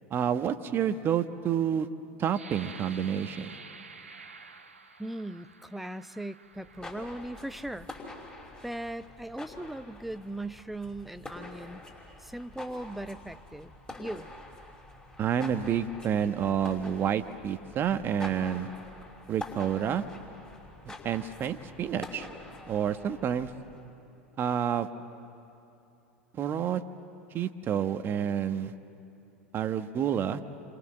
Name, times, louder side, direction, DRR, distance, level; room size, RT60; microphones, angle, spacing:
voice 1, 0.1-1.9 2.2-3.5 15.2-18.7 19.3-20.0 21.0-22.3 22.7-23.5 24.4-24.9 26.4-26.8 27.3-28.7 29.5-30.4, right 8 dB, 35° right, 9 dB, 1.2 m, -29 dB
sound 1, 2.3-7.9 8.6-8.7 9.2-9.7, right 4 dB, 90° right, 1.3 m, -50 dB
voice 2, 5.0-7.9 8.6-11.8 12.2-14.3, right 1 dB, ahead, 12 dB, 0.7 m, -39 dB
sound 2, 6.6-23.9, left 2 dB, 15° left, 5.5 m, -46 dB
29.0 x 27.0 x 7.5 m, 2.8 s
figure-of-eight pair, 85°, 7 cm